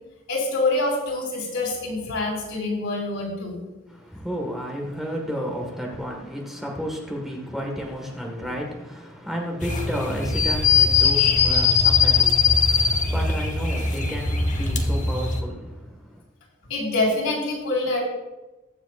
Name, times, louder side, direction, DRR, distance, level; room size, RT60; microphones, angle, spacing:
voice 1, 0.3-3.6 16.7-18.0, left 2 dB, 80° left, 4.3 m, -25 dB
voice 2, 3.9-16.2, equal, ahead, 1.6 m, -32 dB
sound 1, 9.6-15.4, left 5 dB, 35° left, 1.1 m, -20 dB
21.5 x 7.4 x 2.5 m
head